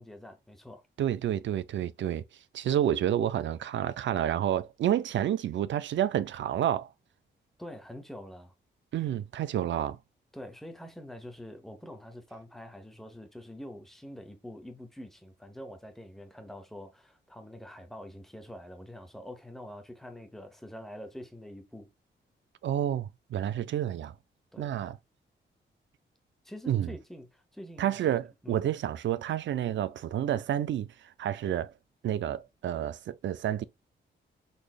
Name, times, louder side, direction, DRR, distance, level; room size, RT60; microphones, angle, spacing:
voice 1, 0.0-0.8 7.6-8.5 10.3-21.9 24.5-24.7 26.4-28.0 28.4-28.7, left 1 dB, ahead, 0.8 m, -45 dB
voice 2, 1.0-2.2 2.5-6.9 8.9-10.0 22.6-24.1 24.6-25.0 26.7-26.9 27.8-31.7 32.0-33.6, right 11 dB, 70° right, 0.4 m, -29 dB
4.1 x 3.3 x 2.3 m
wide cardioid pair, 150°, 20 cm